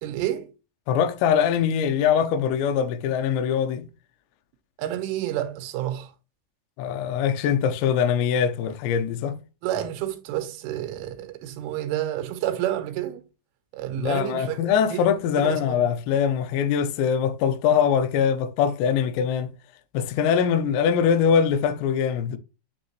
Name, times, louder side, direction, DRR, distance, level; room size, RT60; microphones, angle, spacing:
voice 1, 0.0-0.5 4.8-6.1 9.6-13.2 13.7-14.6 14.9-15.1 15.4-15.9, right 12 dB, 80° right, 3.5 m, -29 dB
voice 2, 0.9-3.9 6.8-9.4 14.0-19.5 19.9-22.4, left 7 dB, 80° left, 2.7 m, -22 dB
9.1 x 3.6 x 3.0 m
omnidirectional pair, 5.7 m